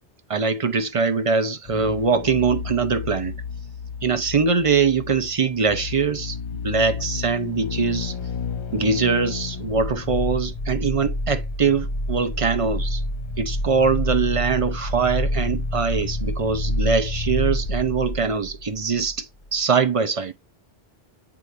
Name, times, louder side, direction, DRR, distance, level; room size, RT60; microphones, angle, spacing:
voice 1, 0.3-3.3 4.0-6.4 6.6-8.2 8.7-13.0 13.4-20.3, right 5 dB, 45° right, 0.5 m, -22 dB
sound 1, 1.6-19.2 19.4-19.5, left 2 dB, 45° left, 0.4 m, -29 dB
8.1 x 4.7 x 2.5 m
omnidirectional pair, 1.1 m